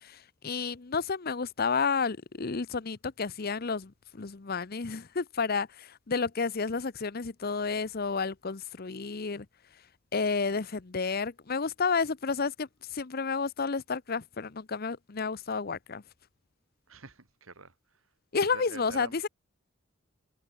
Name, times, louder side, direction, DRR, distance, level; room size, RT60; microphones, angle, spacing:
voice 1, 0.0-9.5 10.1-16.0 18.3-19.3, left 5 dB, 50° left, 0.8 m, -31 dB
voice 2, 16.9-17.7 18.5-19.3, right 3 dB, 90° right, 3.2 m, -46 dB
head